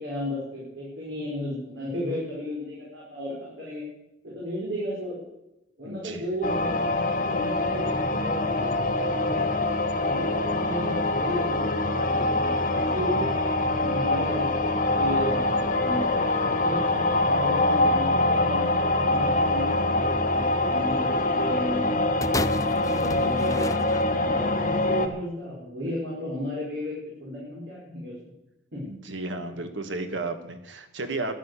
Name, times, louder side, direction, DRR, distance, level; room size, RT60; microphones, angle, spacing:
voice 1, 0.0-3.8 4.2-5.2 5.8-9.4 9.9-11.7 12.0-13.3 13.8-18.6 18.9-22.1 22.6-23.8 24.2-28.3 28.7-28.8, equal, 65° right, -5 dB, 5.1 m, -34 dB
voice 2, 5.8-6.2 28.9-31.4, right 2 dB, 85° right, 8 dB, 1.6 m, -33 dB
sound 1, 6.4-25.1, left 2 dB, 45° left, 1.3 m, -24 dB
sound 2, 22.2-24.5 25.3-25.4, left 2 dB, 20° left, 0.5 m, -33 dB
12.0 x 10.5 x 8.2 m, 0.92 s
head